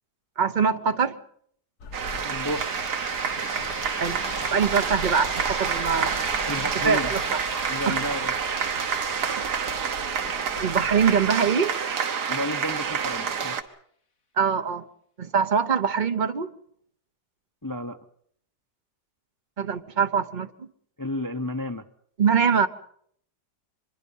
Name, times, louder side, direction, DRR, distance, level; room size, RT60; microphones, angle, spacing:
voice 1, 0.4-1.1 4.0-4.2 4.5-6.2 6.8-7.4 7.9-8.0 9.4-9.5 10.6-11.7 14.4-14.9 15.2-16.5 19.6-20.7 22.2-22.7, right 6 dB, 35° right, 9 dB, 1.0 m, -23 dB
sound 1, 1.8-11.3, left 4 dB, 70° left, 1.9 m, -42 dB
sound 2, 1.9-13.6, right 7 dB, 80° right, 1.9 m, -28 dB
voice 2, 2.2-2.7 6.5-7.1 7.7-8.3 12.3-13.6 17.6-18.0 21.0-21.8, left 1 dB, 20° left, 7 dB, 0.5 m, -31 dB
sound 3, 2.5-12.3, left 4 dB, 50° left, 2.1 m, -42 dB
25.5 x 21.5 x 5.5 m, 0.65 s
omnidirectional pair, 1.7 m